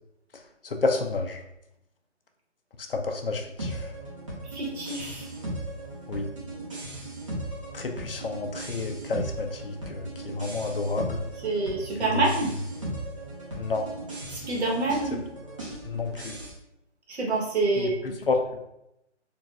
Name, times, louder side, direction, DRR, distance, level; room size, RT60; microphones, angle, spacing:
voice 1, 0.6-1.4 2.9-3.9 6.1-6.3 7.7-11.2 12.1-12.3 13.6-13.9 15.8-16.4 17.8-17.9 18.3-18.4, left 3 dB, 50° left, 4 dB, 0.5 m, -29 dB
sound 1, 3.6-16.5, right 1 dB, 25° right, 0.7 m, -37 dB
voice 2, 4.5-5.3 11.4-12.5 14.3-15.2 17.1-18.1, right 3 dB, 65° right, -2 dB, 1.1 m, -27 dB
3.9 x 2.3 x 2.3 m, 0.83 s
figure-of-eight pair, 165°, 36 cm